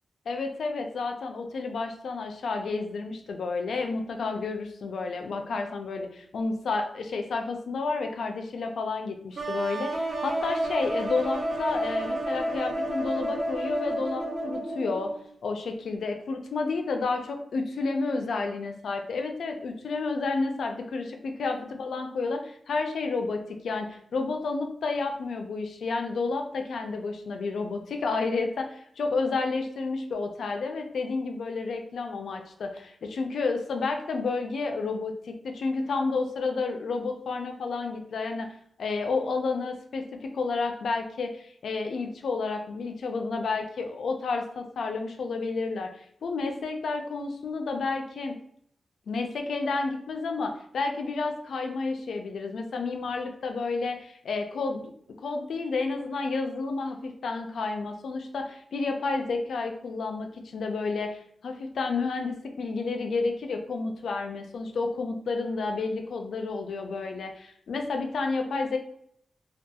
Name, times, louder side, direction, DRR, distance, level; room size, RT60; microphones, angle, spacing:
voice 1, 0.3-15.1 15.4-38.5 38.8-48.3 49.1-54.9 55.2-68.8, left 3 dB, 75° left, 4 dB, 0.3 m, -31 dB
sound 1, 9.4-15.2, right 1 dB, 75° right, 0.7 m, -31 dB
2.7 x 2.2 x 2.2 m, 0.67 s
wide cardioid pair, 165°, 0 cm